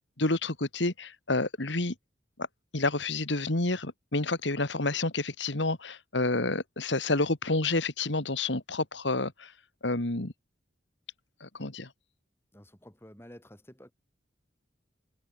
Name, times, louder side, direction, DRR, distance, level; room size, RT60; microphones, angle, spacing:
voice 1, 0.2-1.9 2.7-9.5 9.8-10.3 11.4-11.9, left 2 dB, 70° left, 2.4 m, -29 dB
voice 2, 12.5-13.9, equal, 15° left, 6.7 m, -51 dB
head